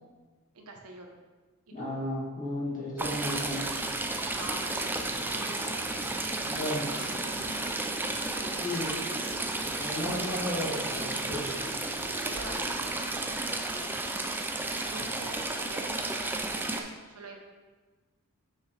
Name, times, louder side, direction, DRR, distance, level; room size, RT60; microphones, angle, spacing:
voice 1, 0.5-1.2 1.7-2.0 4.3-7.7 8.2-9.5 12.1-14.0 14.7-17.4, right 3 dB, 80° right, 2 dB, 1.0 m, -46 dB
voice 2, 1.7-3.7 6.4-6.9 8.2-8.9 9.8-11.5, left 1 dB, 40° left, -6 dB, 1.9 m, -34 dB
Stream / Trickle dribble, 3.0-16.8, right 2 dB, 10° right, 0.4 m, -33 dB
sound 1, 4.2-13.0, equal, 15° left, 1.4 m, -46 dB
6.3 x 5.8 x 3.3 m, 1.3 s
head